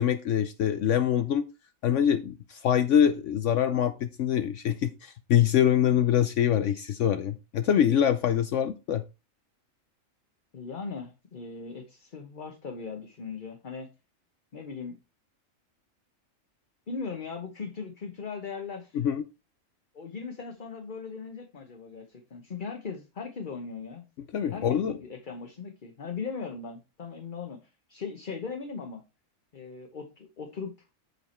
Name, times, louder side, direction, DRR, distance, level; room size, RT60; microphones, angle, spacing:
voice 1, 0.0-1.5 1.8-9.0 18.9-19.2 24.3-24.9, left 9 dB, 70° left, 1.0 m, -24 dB
voice 2, 10.5-13.9 14.5-15.0 16.9-19.0 19.9-24.0 24.5-29.0 29.5-30.7, left 5 dB, 40° left, 1.1 m, -39 dB
8.1 x 4.7 x 4.3 m
omnidirectional pair, 1.4 m